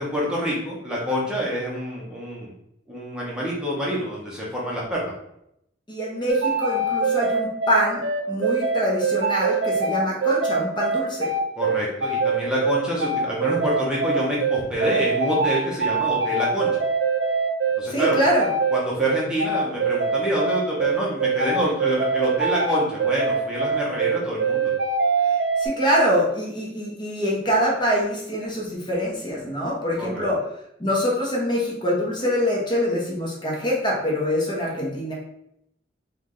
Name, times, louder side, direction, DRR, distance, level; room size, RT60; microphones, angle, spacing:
voice 1, 0.0-2.5 2.9-5.1 11.6-16.7 17.8-18.2 18.7-24.7 30.0-30.2, equal, 5° right, -6 dB, 0.9 m, -26 dB
voice 2, 5.9-11.3 17.9-18.5 25.6-30.4 30.8-35.1, equal, 25° left, -3 dB, 1.0 m, -24 dB
sound 1, 6.3-25.7, right 4 dB, 80° right, 0.6 m, -23 dB
3.5 x 3.1 x 3.8 m, 0.77 s
head